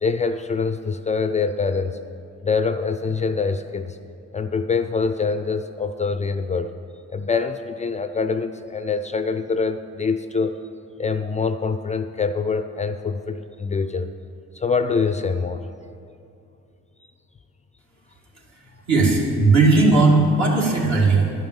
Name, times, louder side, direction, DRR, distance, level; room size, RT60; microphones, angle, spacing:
voice 1, 0.0-2.0 2.4-4.0 4.3-6.7 7.1-10.5 11.0-14.1 14.5-15.7, left 5 dB, 25° left, 9 dB, 0.4 m, -24 dB
voice 2, 18.9-21.3, right 3 dB, 65° right, -2 dB, 2.2 m, -17 dB
10.5 x 5.2 x 7.9 m, 2.5 s
cardioid pair, 90°, 30 cm